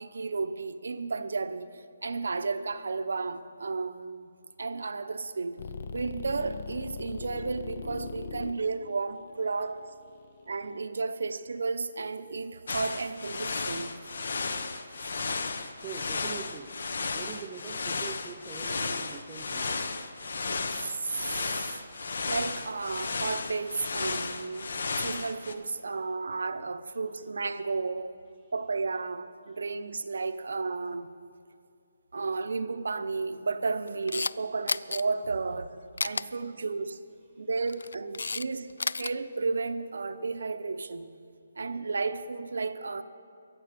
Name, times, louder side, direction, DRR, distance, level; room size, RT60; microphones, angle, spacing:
voice 1, 0.0-1.7 2.0-4.3 4.6-5.6 5.9-9.9 10.5-13.9 15.1-15.2 20.3-21.8 22.3-24.7 25.0-28.2 28.5-31.1 32.1-37.0 37.4-38.7 39.0-41.1 41.6-43.0, right 4 dB, 70° right, 0.9 m, -33 dB
sound 1, 5.6-10.7, left 5 dB, 35° left, 0.7 m, -40 dB
sound 2, 12.7-25.5, left 4 dB, 55° left, 1.0 m, -34 dB
voice 2, 15.8-16.8 17.1-20.0, right 7 dB, 10° right, 0.5 m, -43 dB
Camera, 33.9-34.3 34.7-35.0 36.0-36.2 37.5-38.5 38.7-39.1, left 4 dB, 85° left, 0.4 m, -31 dB
23.0 x 8.0 x 6.7 m
hypercardioid pair, 175°, 0 cm